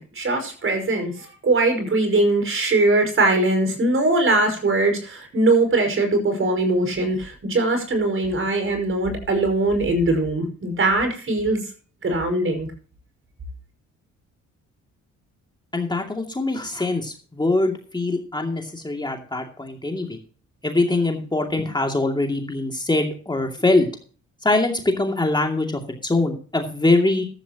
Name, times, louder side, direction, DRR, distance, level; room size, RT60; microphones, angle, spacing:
voice 1, 0.0-11.6 12.0-12.7, right 2 dB, 45° right, 6 dB, 5.6 m, -21 dB
voice 2, 15.7-20.2 20.6-23.9 24.4-27.2, left 2 dB, 15° left, 2 dB, 2.5 m, -23 dB
14.5 x 12.5 x 2.9 m, 0.40 s
cardioid pair, 90°, 30 cm